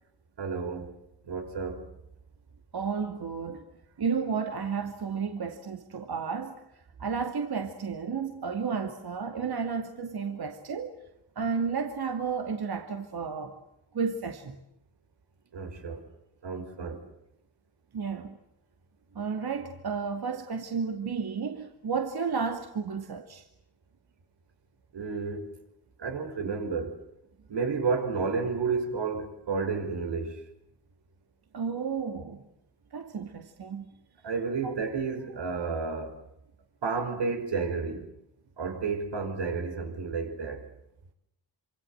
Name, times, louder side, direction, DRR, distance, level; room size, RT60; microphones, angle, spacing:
voice 1, 0.4-0.9 1.3-1.8 15.5-16.0 16.4-17.0 24.9-25.4 26.0-26.9 27.5-30.3 34.2-36.1 36.8-38.0 38.6-40.6, right 4 dB, 80° right, 5.3 m, -31 dB
voice 2, 2.7-3.7 4.0-6.6 7.0-11.0 11.4-13.6 13.9-14.6 17.9-18.4 19.1-23.4 31.5-32.4 32.9-34.0 34.6-34.7 35.3-35.4, right 5 dB, 60° right, 2.5 m, -32 dB
27.0 x 26.5 x 8.0 m
cardioid pair, 95°, 42 cm